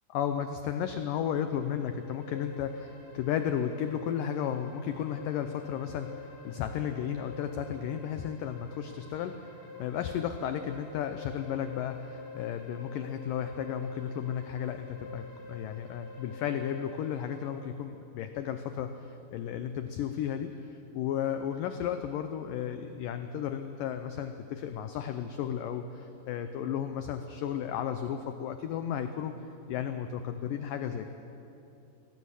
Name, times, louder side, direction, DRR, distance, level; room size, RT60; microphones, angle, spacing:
voice 1, 0.1-29.3 29.7-31.1, left 9 dB, 85° left, 8 dB, 1.9 m, -34 dB
sound 1, 1.2-17.5, left 3 dB, 65° left, 4.8 m, -48 dB
19.5 x 16.5 x 8.2 m, 2.9 s
omnidirectional pair, 4.8 m